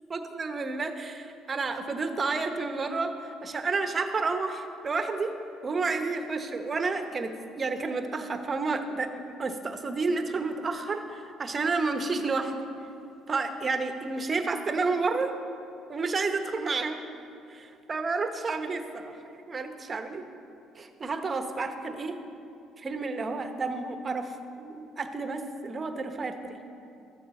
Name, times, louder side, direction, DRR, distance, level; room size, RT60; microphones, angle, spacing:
voice 1, 0.1-5.3 5.6-12.7 13.3-15.3 15.9-17.0 17.5-20.2 20.7-22.1 22.8-26.6, right 3 dB, 30° right, 6 dB, 1.0 m, -31 dB
13.5 x 7.3 x 7.0 m, 2.6 s
cardioid pair, 120°, 0 cm